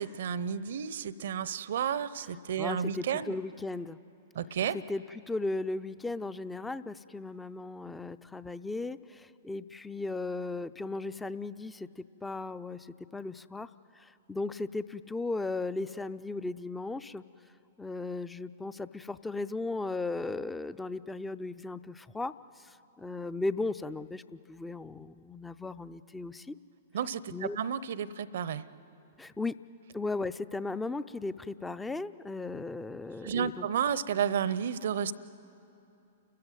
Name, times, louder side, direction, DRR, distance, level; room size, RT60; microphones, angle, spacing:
voice 1, 0.0-3.3 4.3-4.8 26.9-28.6 33.2-35.1, right 8 dB, 65° right, 17 dB, 0.7 m, -32 dB
voice 2, 2.6-4.0 4.7-13.7 14.0-17.2 17.8-26.5 27.3-27.6 29.2-29.6 29.9-33.7, left 3 dB, 10° left, 14 dB, 0.5 m, -36 dB
30.0 x 14.5 x 9.2 m, 2.8 s
figure-of-eight pair, 110°, 0 cm